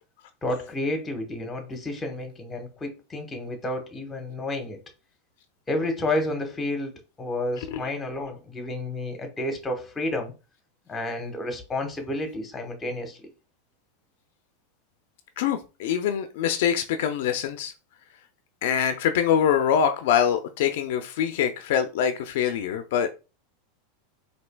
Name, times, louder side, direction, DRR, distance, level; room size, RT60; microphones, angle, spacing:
voice 1, 0.4-4.8 5.7-10.3 10.9-13.2, left 1 dB, 15° left, 1.0 m, -30 dB
voice 2, 15.4-17.7 18.6-23.1, left 8 dB, 70° left, 0.4 m, -24 dB
4.3 x 2.7 x 2.2 m
supercardioid pair, 130°, 0 cm